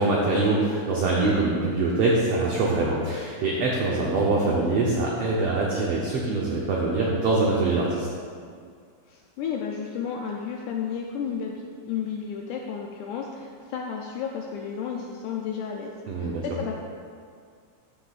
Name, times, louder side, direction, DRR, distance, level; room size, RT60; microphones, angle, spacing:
voice 1, 0.0-8.1 16.1-16.4, right 3 dB, 85° right, -3 dB, 1.4 m, -24 dB
voice 2, 9.1-16.7, left 7 dB, 80° left, 0 dB, 1.8 m, -32 dB
14.0 x 6.9 x 2.4 m, 2.2 s
omnidirectional pair, 4.0 m